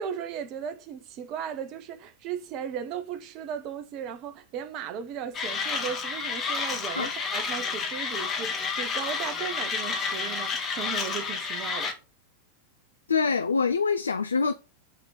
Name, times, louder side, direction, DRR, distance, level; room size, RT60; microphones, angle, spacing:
voice 1, 0.0-12.0, right 8 dB, 40° right, 0.9 m, -36 dB
Mechanisms, 5.3-11.9, left 5 dB, 25° left, 1.7 m, -30 dB
voice 2, 13.1-14.5, left 5 dB, 75° left, 0.4 m, -25 dB
6.2 x 3.8 x 5.6 m
figure-of-eight pair, 90°, 0 cm